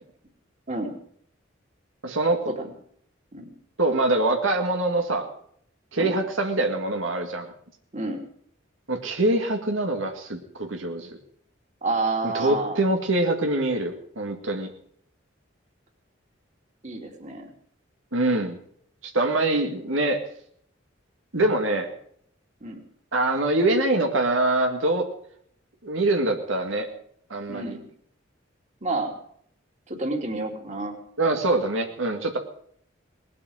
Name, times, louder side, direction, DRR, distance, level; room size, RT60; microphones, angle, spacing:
voice 1, 2.0-2.4 3.8-5.3 5.9-7.5 8.9-11.2 12.2-14.7 18.1-18.6 19.0-20.2 21.3-21.9 23.1-25.0 25.8-26.9 27.3-27.8 31.2-32.4, right 2 dB, 85° right, 3 dB, 2.0 m, -24 dB
voice 2, 11.8-12.8 16.8-17.5 22.6-22.8 27.5-27.9 28.8-29.1 29.9-31.0, right 2 dB, 35° right, 2 dB, 2.8 m, -29 dB
20.0 x 8.6 x 7.8 m, 0.65 s
head